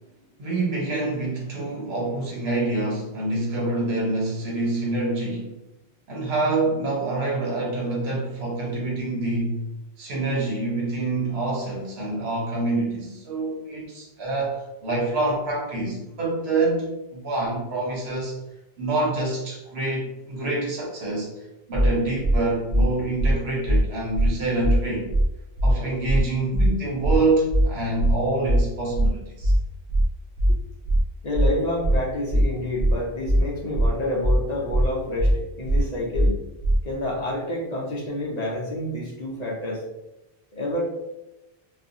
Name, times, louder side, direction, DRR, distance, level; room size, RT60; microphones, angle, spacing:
voice 1, 0.4-5.5 6.1-9.6 10.0-18.4 18.8-21.3 21.7-25.1 25.6-29.5, right 2 dB, 80° right, -3 dB, 1.1 m, -26 dB
sound 1, 21.7-21.9 22.2-22.4 22.7-22.8 23.2-23.3 23.6-23.8 24.1-24.3 24.6-24.8 25.1-25.2 25.6-25.7 26.0-26.2 26.5-26.7 27.0-27.2 27.5-27.6 28.0-28.1 28.4-28.6 28.9-29.1 29.4-29.6 29.9-30.0 30.4-30.5 30.8-31.0 31.3-31.5 31.8-32.0 32.3-32.4 32.8-32.9 33.2-33.4 33.7-33.9 34.2-34.4 34.7-34.8 35.2-35.3 35.6-35.8 36.1-36.3 36.6-36.8, right 1 dB, 65° right, 0.7 m, -20 dB
voice 2, 31.2-36.4 36.8-39.8 40.5-40.8, left 1 dB, 50° left, -4 dB, 0.6 m, -28 dB
2.5 x 2.4 x 2.5 m, 0.95 s
omnidirectional pair, 1.0 m